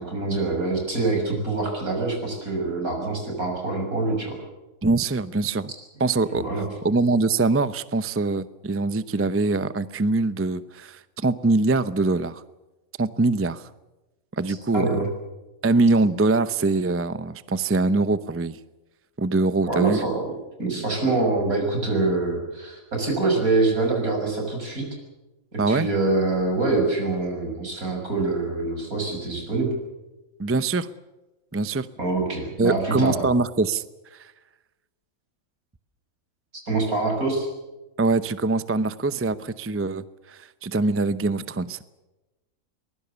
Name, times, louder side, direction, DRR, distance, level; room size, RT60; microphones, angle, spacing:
voice 1, 0.0-4.4 6.3-6.7 14.5-15.1 19.7-20.3 20.6-24.9 25.5-29.7 32.0-33.3 36.7-37.5, right 3 dB, 80° right, 2 dB, 7.0 m, -25 dB
voice 2, 4.8-5.7 6.0-12.4 13.0-13.7 14.3-14.9 15.6-18.6 19.2-20.0 25.6-25.9 30.4-30.9 31.5-31.9 32.6-33.8 34.1-34.3 38.0-41.8, right 3 dB, 15° right, 14 dB, 0.4 m, -23 dB
23.5 x 21.0 x 7.0 m, 1.1 s
omnidirectional pair, 1.5 m